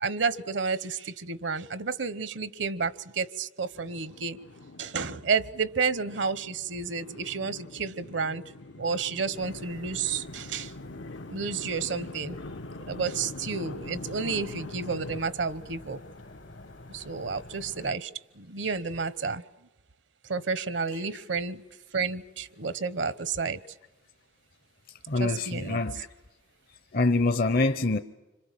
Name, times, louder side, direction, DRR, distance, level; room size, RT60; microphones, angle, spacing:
voice 1, 0.0-4.4 4.8-8.4 8.8-10.7 11.3-12.4 12.9-16.0 16.9-18.1 18.4-19.4 20.3-21.6 21.9-23.6 25.2-25.8, right 5 dB, 65° right, 0.9 m, -31 dB
sound 1, 3.8-15.2, left 2 dB, 85° left, 1.2 m, -43 dB
sound 2, 9.3-17.9, left 2 dB, 70° left, 1.5 m, -47 dB
voice 2, 24.9-26.1 26.7-28.0, left 2 dB, 50° left, 0.8 m, -26 dB
26.5 x 26.0 x 7.5 m
head